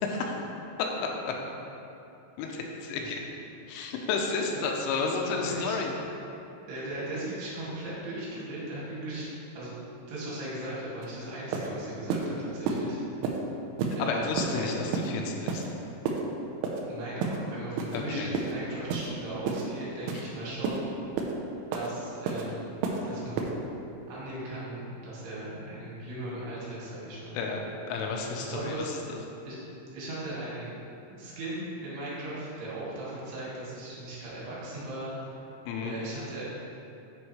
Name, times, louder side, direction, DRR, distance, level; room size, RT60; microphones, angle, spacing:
voice 1, 0.0-0.4 0.8-1.4 2.4-3.2 3.7-6.0 14.0-15.6 17.9-18.3 20.1-20.3 27.3-29.2 35.7-35.9, left 4 dB, 90° left, 1 dB, 3.3 m, -31 dB
voice 2, 5.4-5.8 6.7-9.3 9.5-9.7 10.1-13.0 14.0-14.3 14.5-14.7 16.9-20.8 21.7-22.7 23.0-23.5 24.1-27.4 28.4-29.0 29.4-29.6 29.9-30.8 31.1-35.4 35.8-36.4, right 1 dB, 60° right, -7 dB, 3.9 m, -38 dB
sound 1, 11.0-11.1 11.5-11.7 12.1-12.3 12.7-12.8 13.2-13.4 13.8-14.0 14.4-14.5 14.9-15.1 15.5-15.7 16.1-16.2 16.6-16.8 17.2-17.4 17.8-18.0 18.3-18.5 18.9-19.1 19.5-19.6 20.1-20.2 20.6-20.8 21.2-21.3 21.7-21.9 22.3-22.4 22.8-23.0 23.4-23.5, right 5 dB, 80° right, 3.0 m, -30 dB
9.6 x 7.9 x 3.2 m, 2.8 s
omnidirectional pair, 5.6 m